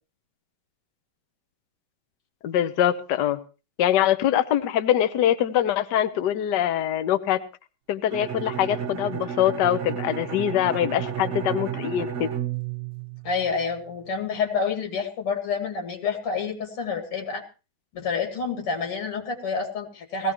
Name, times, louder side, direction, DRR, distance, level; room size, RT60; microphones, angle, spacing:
voice 1, 2.4-3.4 3.8-7.4 7.9-12.3, left 11 dB, 60° left, 11 dB, 1.3 m, -23 dB
Bowed string instrument, 8.1-13.8, right 9 dB, 50° right, 0.9 m, -32 dB
voice 2, 13.2-17.4 17.9-20.3, left 5 dB, 85° left, 4 dB, 3.0 m, -28 dB
19.0 x 16.0 x 3.0 m, 0.32 s
omnidirectional pair, 2.4 m